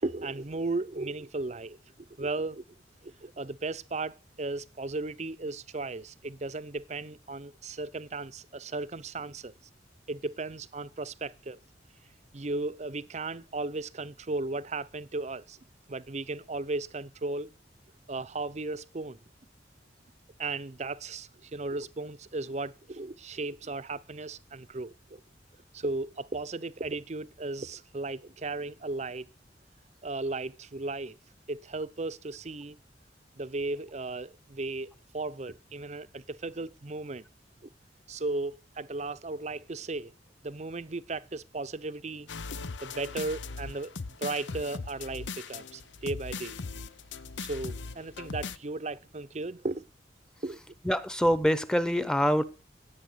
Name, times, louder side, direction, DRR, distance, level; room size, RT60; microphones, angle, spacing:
voice 1, 0.0-2.6 3.0-9.5 10.1-11.6 12.3-15.6 15.9-17.5 18.1-19.2 20.4-25.2 25.7-29.3 30.0-31.2 31.5-32.8 33.3-37.3 37.6-37.7 38.1-40.1 40.4-42.3 42.8-46.6 47.4-49.8 50.4-50.6, right 3 dB, 40° right, 0.7 m, -36 dB
sound 1, 42.3-48.6, left 4 dB, 80° left, 0.8 m, -39 dB
voice 2, 50.9-52.4, equal, 5° left, 0.9 m, -25 dB
16.5 x 8.7 x 6.8 m
head